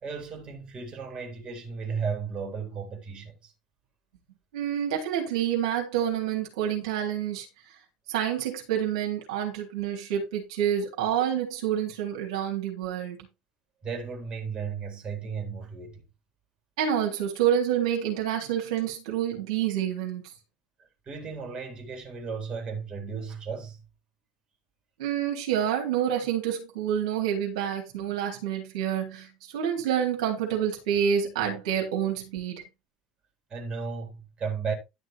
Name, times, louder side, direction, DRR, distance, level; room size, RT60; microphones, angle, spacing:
voice 1, 0.0-3.5 13.8-16.0 21.1-23.8 33.5-34.7, right 5 dB, 25° right, 3.9 m, -34 dB
voice 2, 4.5-7.5 8.1-13.3 16.8-20.2 25.0-32.6, right 9 dB, 60° right, 3.6 m, -28 dB
11.5 x 6.2 x 4.4 m
figure-of-eight pair, 75°, 4 cm